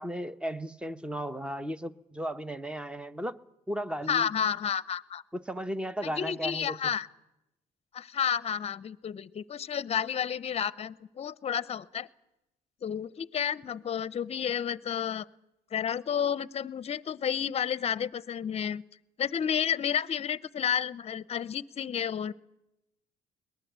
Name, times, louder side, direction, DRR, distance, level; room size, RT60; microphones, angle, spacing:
voice 1, 0.0-3.4 3.7-4.3 5.3-6.8, equal, 5° right, 0.8 m, -35 dB
voice 2, 4.1-5.2 6.0-7.1 7.9-12.1 12.8-15.3 15.7-18.8 19.2-22.3, left 8 dB, 40° left, 0.7 m, -31 dB
21.5 x 19.5 x 8.1 m
cardioid pair, 110°, 17 cm